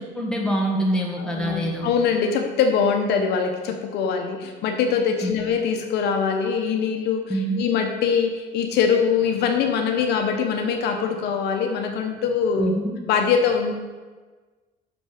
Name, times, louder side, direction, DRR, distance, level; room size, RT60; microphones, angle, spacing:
voice 1, 0.0-1.9 5.2-5.4 7.3-7.6 12.6-12.9, right 1 dB, 5° left, -2 dB, 1.7 m, -25 dB
voice 2, 1.2-12.7 13.1-13.7, left 6 dB, 80° left, 4 dB, 1.0 m, -23 dB
6.2 x 5.2 x 6.4 m, 1.3 s
cardioid pair, 110°, 17 cm